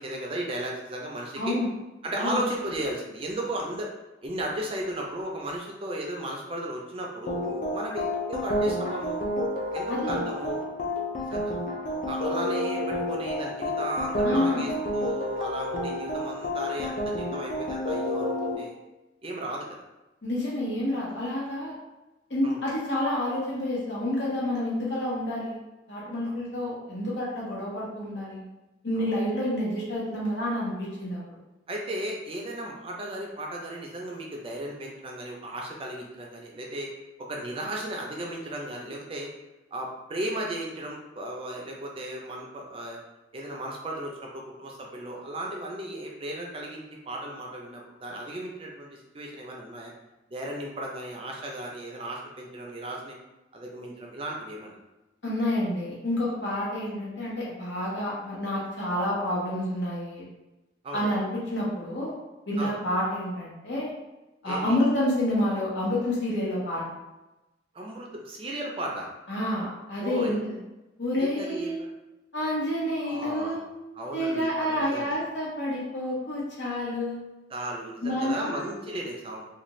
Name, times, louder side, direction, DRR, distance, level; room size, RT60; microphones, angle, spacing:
voice 1, 0.0-1.6 2.0-3.9 4.2-9.2 9.7-10.6 11.3-11.5 12.1-18.7 19.2-19.7 22.4-22.6 26.3-26.4 29.0-29.1 31.7-36.9 37.2-39.3 39.7-43.0 43.3-49.9 50.3-53.2 53.5-54.8 60.8-61.0 62.6-62.8 64.4-64.8 67.7-69.1 70.0-70.4 71.2-71.9 73.0-73.7 73.9-75.2 77.5-79.5, right 1 dB, 30° right, -1 dB, 0.4 m, -35 dB
voice 2, 1.4-1.7 2.2-2.4 9.9-10.2 14.2-14.6 20.2-21.8 22.3-25.6 25.9-28.4 28.8-31.4 55.2-60.2 60.9-62.1 62.5-63.9 64.4-66.8 69.3-70.6 71.0-71.8 72.3-73.7 74.1-77.3 78.0-78.8, left 1 dB, 75° left, -6 dB, 1.0 m, -29 dB
sound 1, 7.3-18.6, left 1 dB, 45° left, 0.4 m, -30 dB
2.5 x 2.4 x 3.0 m, 1.0 s
head